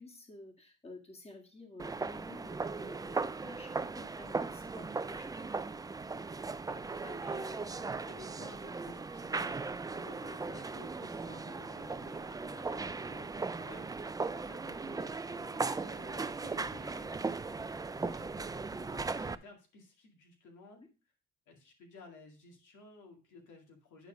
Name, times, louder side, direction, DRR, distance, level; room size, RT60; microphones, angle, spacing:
voice 1, 0.0-5.3 20.8-20.9, left 2 dB, 20° left, 2 dB, 1.9 m, -52 dB
sound 1, 1.8-19.3, right 4 dB, 15° right, 0.3 m, -38 dB
voice 2, 6.7-20.8 21.5-24.1, left 3 dB, 80° left, 2 dB, 2.2 m, -54 dB
9.4 x 4.1 x 5.1 m, 0.33 s
cardioid pair, 90°, 30 cm